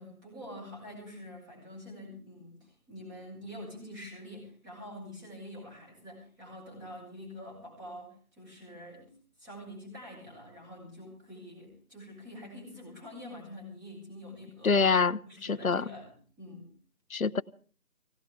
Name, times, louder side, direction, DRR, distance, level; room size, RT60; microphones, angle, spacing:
voice 1, 0.0-9.1 9.4-14.8 15.3-16.7, left 1 dB, 15° right, -4 dB, 7.8 m, -46 dB
voice 2, 14.6-15.8 17.1-17.4, left 5 dB, 70° left, 13 dB, 1.0 m, -26 dB
21.5 x 18.0 x 3.7 m, 0.42 s
figure-of-eight pair, 170°, 43 cm